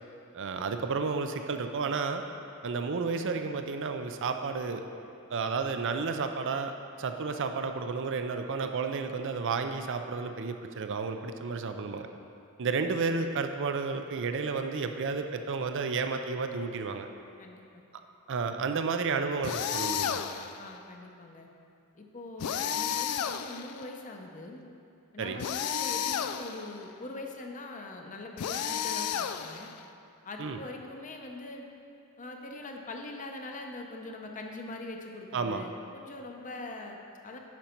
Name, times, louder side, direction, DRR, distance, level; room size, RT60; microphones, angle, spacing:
voice 1, 0.3-2.2 2.6-4.8 5.3-6.7 7.0-12.1 12.6-17.1 18.3-20.2 25.2-25.4 30.4-30.6 35.3-35.6, right 4 dB, 60° right, 7 dB, 0.5 m, -31 dB
voice 2, 17.4-17.8 20.6-21.5 22.0-24.6 25.1-29.7 30.2-31.7 32.2-37.4, left 2 dB, 35° left, 2 dB, 0.7 m, -42 dB
sound 1, 19.4-20.6 22.4-23.8 25.4-26.7 28.4-29.8, left 8 dB, 90° left, 0.4 m, -32 dB
10.5 x 5.2 x 4.4 m, 2.6 s
head